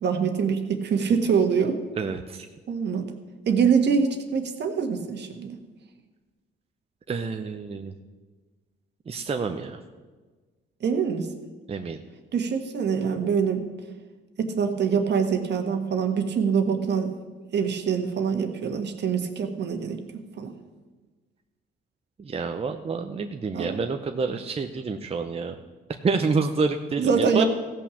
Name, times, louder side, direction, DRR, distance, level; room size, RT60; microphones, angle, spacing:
voice 1, 0.0-1.8 2.7-3.1 3.5-5.6 10.8-11.3 12.3-13.7 14.4-17.1 17.5-20.0 20.4-20.5 23.5-23.8 27.0-27.5, right 6 dB, 60° right, 6 dB, 1.5 m, -24 dB
voice 2, 2.0-2.5 7.1-7.9 9.1-9.8 11.7-12.0 22.2-25.5 26.0-27.4, right 4 dB, 30° right, 5 dB, 0.7 m, -28 dB
15.5 x 6.0 x 7.1 m, 1.3 s
cardioid pair, 90°, 20 cm